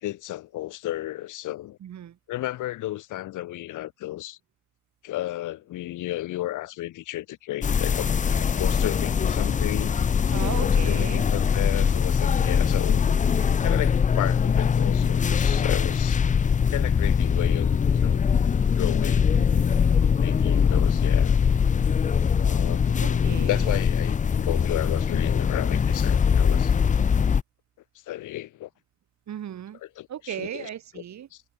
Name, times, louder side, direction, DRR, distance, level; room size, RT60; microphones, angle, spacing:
voice 1, 0.0-1.8 2.3-4.4 5.0-8.1 8.4-9.9 10.6-13.1 13.6-16.2 16.7-18.2 18.8-19.4 20.2-21.4 22.4-26.7 28.1-28.7 29.8-31.0 31.3-31.4, left 15 dB, 85° left, 1.9 m, -33 dB
voice 2, 1.8-2.2 10.3-11.3 19.3-19.7 23.0-23.8 29.3-29.8 30.1-31.3, right 10 dB, 65° right, 7.5 m, -36 dB
sound 1, 7.6-27.4, left 7 dB, 25° left, 0.5 m, -22 dB
cardioid pair, 90°, 30 cm